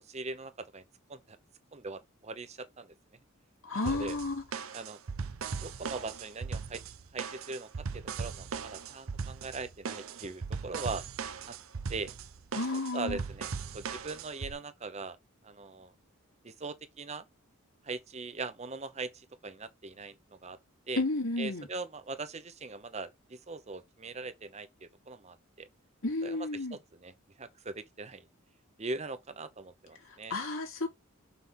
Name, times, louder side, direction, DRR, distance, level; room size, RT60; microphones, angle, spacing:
voice 1, 0.1-0.8 1.1-1.4 1.7-2.9 3.7-4.2 4.7-5.0 5.6-6.8 7.1-7.7 7.9-11.0 11.5-11.6 11.9-12.1 12.5-12.7 12.9-15.2 15.4-15.9 16.4-17.2 17.8-20.1 20.4-20.6 20.9-21.0 21.4-25.7 26.2-27.1 27.4-28.3 28.8-30.3, right 3 dB, 30° right, 0.8 m, -41 dB
voice 2, 3.6-4.4 12.5-13.2 21.0-21.7 26.0-26.8 30.3-30.9, left 2 dB, 70° left, 2.8 m, -32 dB
sound 1, 3.9-14.5, right 5 dB, 75° right, 0.7 m, -39 dB
5.8 x 3.5 x 5.7 m
head